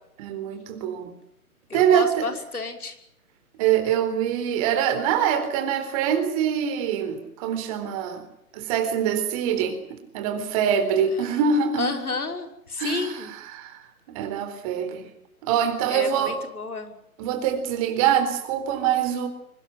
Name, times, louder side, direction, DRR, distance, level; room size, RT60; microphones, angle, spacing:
voice 1, 0.2-1.1 1.7-2.3 3.6-8.2 8.5-9.8 10.1-11.9 12.8-13.8 14.1-15.0 15.4-16.4 17.2-19.3, right 8 dB, 25° right, 8 dB, 4.1 m, -24 dB
voice 2, 1.7-3.0 11.1-11.4 11.8-13.3 15.9-16.9, left 4 dB, 85° left, 5 dB, 5.7 m, -31 dB
24.0 x 19.5 x 9.2 m, 0.79 s
hypercardioid pair, 155°, 43 cm